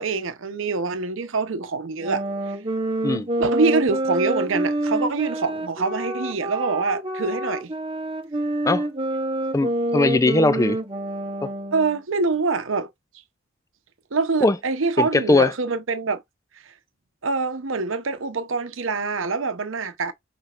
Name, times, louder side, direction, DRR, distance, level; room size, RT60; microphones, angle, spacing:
voice 1, 0.0-2.2 3.4-7.7 11.7-12.9 14.1-16.2 17.2-20.1, right 4 dB, 75° right, 0.8 m, -25 dB
sound 1, 2.0-12.0, right 1 dB, 25° right, 0.8 m, -27 dB
voice 2, 9.5-10.8 11.4-11.5 14.4-14.6 15.0-15.5, left 2 dB, 15° left, 0.3 m, -20 dB
6.0 x 3.3 x 2.5 m
head